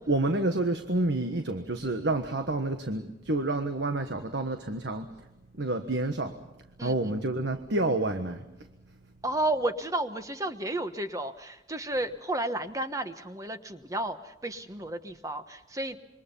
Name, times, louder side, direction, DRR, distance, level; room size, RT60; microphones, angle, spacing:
voice 1, 0.1-5.1 5.6-6.4 6.8-8.4, right 2 dB, 70° right, 7 dB, 1.4 m, -29 dB
voice 2, 6.8-7.1 9.2-16.0, right 1 dB, 20° right, 9 dB, 1.2 m, -32 dB
27.0 x 24.0 x 5.6 m, 0.96 s
head